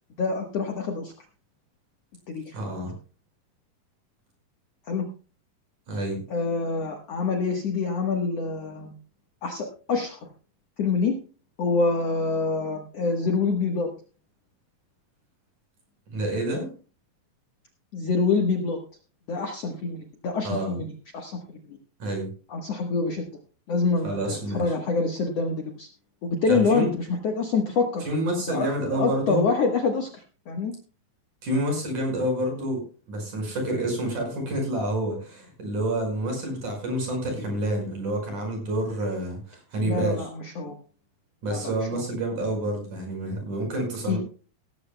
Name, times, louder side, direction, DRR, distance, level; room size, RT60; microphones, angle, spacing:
voice 1, 0.2-1.1 2.3-2.6 4.9-5.0 6.3-8.9 9.4-10.2 10.8-11.2 11.6-13.9 17.9-18.8 19.3-20.9 21.1-21.4 21.7-21.8 22.5-23.3 23.7-25.9 26.2-28.1 28.5-30.7 39.8-40.8 41.5-41.6 41.9-42.0 44.1-44.2, left 4 dB, 60° left, 3 dB, 1.8 m, -26 dB
voice 2, 2.5-2.9 5.9-6.2 16.1-16.7 20.4-20.8 22.0-22.3 24.0-24.7 26.5-26.9 28.0-29.4 31.4-32.8 33.1-40.3 41.4-44.2, right 1 dB, 55° right, 2 dB, 6.7 m, -28 dB
17.5 x 14.5 x 2.2 m, 0.37 s
omnidirectional pair, 4.3 m